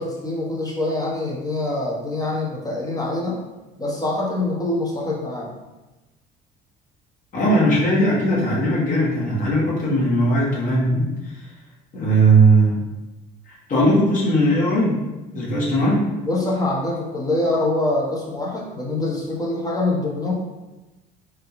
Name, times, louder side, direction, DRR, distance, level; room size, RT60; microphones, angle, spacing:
voice 1, 0.0-3.4 3.8-5.5 16.2-20.3, left 2 dB, 20° left, -3 dB, 0.9 m, -24 dB
voice 2, 7.3-11.4 11.9-12.8 13.5-15.0 15.3-16.1, right 1 dB, 45° left, -6 dB, 1.3 m, -18 dB
3.5 x 2.3 x 3.0 m, 1.1 s
supercardioid pair, 95°, 19 cm